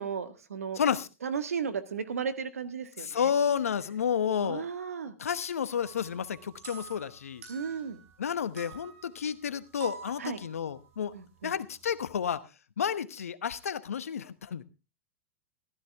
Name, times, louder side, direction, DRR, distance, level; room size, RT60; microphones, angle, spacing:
voice 1, 0.0-0.8 1.2-3.3 4.4-5.1 7.5-8.0 10.2-10.4 11.1-11.5, right 6 dB, 90° right, 11 dB, 1.6 m, -35 dB
voice 2, 0.7-1.1 3.0-4.6 5.2-7.4 8.2-11.1 11.4-12.4 12.8-14.6, left 8 dB, 85° left, 15 dB, 1.0 m, -31 dB
sound 1, 5.7-8.3 8.6-12.3, right 5 dB, 70° right, 6.1 m, -48 dB
15.0 x 13.0 x 3.4 m, 0.29 s
hypercardioid pair, 105°, 8 cm